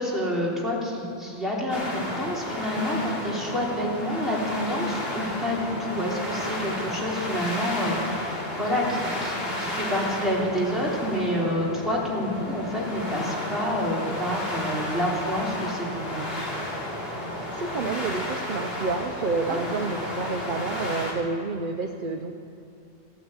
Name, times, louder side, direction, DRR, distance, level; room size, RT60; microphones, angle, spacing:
voice 1, 0.0-16.5 19.5-19.6, equal, ahead, -5 dB, 3.2 m, -28 dB
sound 1, 1.7-21.1, left 1 dB, 60° left, 2.9 m, -32 dB
voice 2, 17.3-22.3, right 4 dB, 50° right, 5 dB, 0.8 m, -29 dB
15.5 x 9.1 x 8.8 m, 2.6 s
omnidirectional pair, 1.2 m